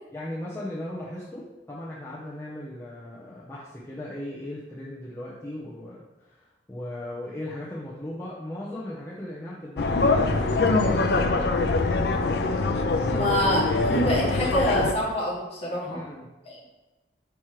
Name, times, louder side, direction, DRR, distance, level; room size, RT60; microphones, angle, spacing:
voice 1, 0.1-11.4 13.1-13.3 15.8-16.3, left 1 dB, 15° left, -8 dB, 0.8 m, -37 dB
sound 1, 9.8-14.9, left 3 dB, 65° left, 0.5 m, -23 dB
voice 2, 13.1-16.0 16.5-16.7, equal, 35° left, -4 dB, 1.7 m, -26 dB
5.9 x 5.2 x 3.2 m, 1.1 s
head